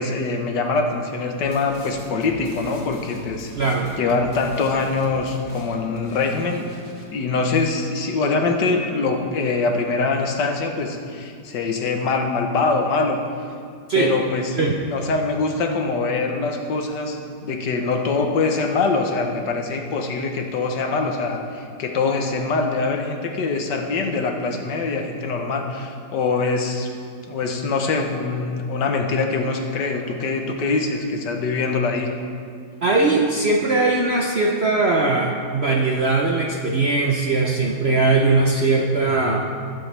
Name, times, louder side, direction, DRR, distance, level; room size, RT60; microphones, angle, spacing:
voice 1, 0.0-3.5 4.0-6.7 7.1-13.2 14.0-17.2 17.4-26.9 27.3-32.1, left 3 dB, 70° left, 3 dB, 1.6 m, -23 dB
sound 1, 1.4-7.0, left 1 dB, 50° left, 2.0 m, -42 dB
voice 2, 3.6-4.0 13.9-14.1 14.6-14.7 32.8-39.5, right 3 dB, 55° right, 0 dB, 0.7 m, -20 dB
19.5 x 7.9 x 3.3 m, 2.2 s
omnidirectional pair, 2.0 m